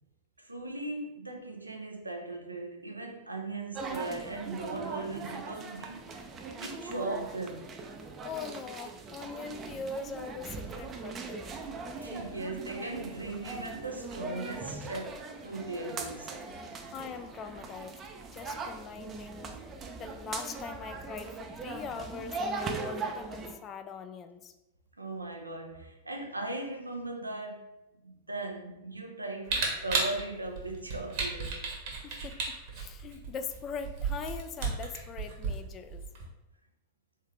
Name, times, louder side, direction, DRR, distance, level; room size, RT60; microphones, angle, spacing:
voice 1, 0.4-6.1 6.6-7.7 12.0-16.4 25.0-27.7 28.0-31.7, right 2 dB, 85° right, 0.6 m, -38 dB
sound 1, 3.7-23.5, right 4 dB, 25° right, 0.5 m, -40 dB
voice 2, 8.2-11.6 16.9-18.0 18.3-19.6 20.0-24.5 32.0-36.0, left 6 dB, 30° left, 0.4 m, -41 dB
Camera, 29.5-36.2, right 4 dB, 50° right, 1.1 m, -34 dB
3.6 x 3.3 x 3.2 m
figure-of-eight pair, 90°, 0 cm